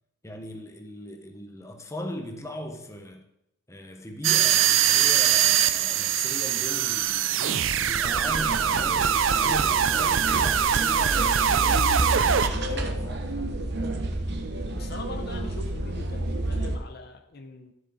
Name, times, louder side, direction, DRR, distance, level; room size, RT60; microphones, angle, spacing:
voice 1, 0.2-3.2 3.7-13.3, left 1 dB, 15° left, 1.0 m, -39 dB
sound 1, 4.2-12.5, right 9 dB, 75° right, 0.5 m, -22 dB
sound 2, 8.0-16.8, right 1 dB, 55° right, 1.0 m, -30 dB
voice 2, 14.7-17.7, left 2 dB, 55° left, 0.8 m, -42 dB
12.0 x 7.7 x 4.1 m
head